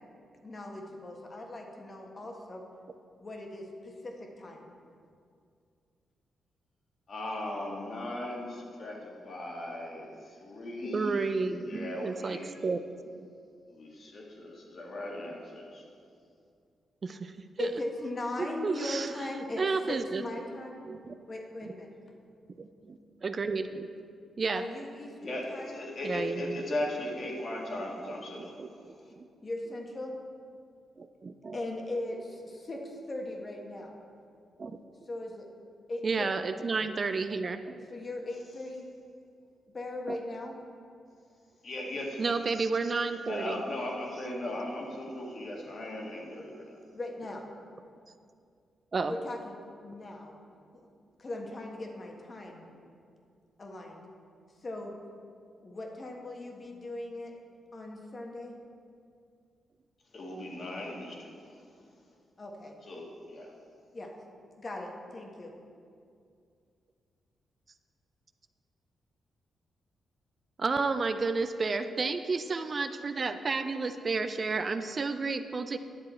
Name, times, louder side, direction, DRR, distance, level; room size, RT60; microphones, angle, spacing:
voice 1, 0.4-2.6 3.2-4.7 17.6-20.8 21.3-21.9 24.5-25.8 29.4-30.1 31.5-33.9 35.1-35.5 35.9-36.4 37.9-38.9 39.7-40.5 46.9-47.5 49.1-50.4 51.2-52.6 53.6-54.0 54.6-54.9 55.6-57.3 57.7-58.5 62.4-62.8 63.9-64.1 64.6-65.5, left 1 dB, 35° left, 1 dB, 1.3 m, -39 dB
voice 2, 7.1-11.2 11.7-12.5 13.7-15.8 25.2-28.6 41.6-42.2 43.3-46.8 60.1-61.8 62.8-63.5, left 1 dB, 50° left, -2 dB, 1.8 m, -38 dB
voice 3, 10.9-12.9 13.2-13.3 17.0-17.7 18.4-19.3 19.6-20.2 20.8-21.1 21.6-21.7 22.6-23.9 24.4-24.6 26.0-26.6 28.4-29.3 31.0-31.6 34.6-34.8 36.0-37.8 40.1-40.2 42.2-43.6 45.2-45.3 48.9-49.2 70.6-75.8, right 4 dB, 40° right, 9 dB, 0.4 m, -32 dB
10.5 x 7.4 x 4.3 m, 2.4 s
cardioid pair, 95°, 0 cm